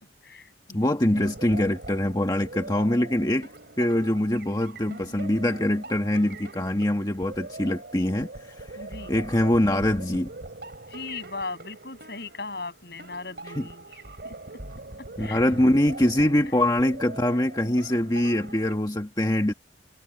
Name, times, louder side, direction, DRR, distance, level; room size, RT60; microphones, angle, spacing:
voice 1, 0.2-1.0 8.7-9.1 10.9-13.8 14.2-14.4 15.0-15.4, left 3 dB, 60° left, 7.6 m, -38 dB
voice 2, 0.7-3.5 3.8-8.7 9.1-10.3 13.6-13.7 15.2-19.5, left 1 dB, 20° left, 1.4 m, -24 dB
sound 1, 1.1-18.7, right 2 dB, 60° right, 3.8 m, -42 dB
head